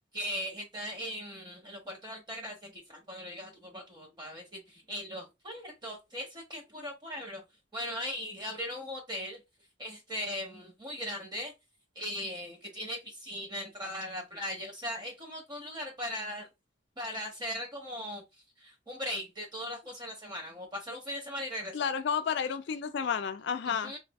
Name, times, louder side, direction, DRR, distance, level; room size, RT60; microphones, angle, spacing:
voice 1, 0.1-7.4 7.7-9.4 9.8-11.5 11.9-16.5 17.0-18.2 18.6-21.9 23.7-24.0, equal, 25° right, 1.0 m, -39 dB
voice 2, 21.7-23.9, left 7 dB, 60° left, 0.3 m, -31 dB
3.2 x 2.3 x 2.3 m
head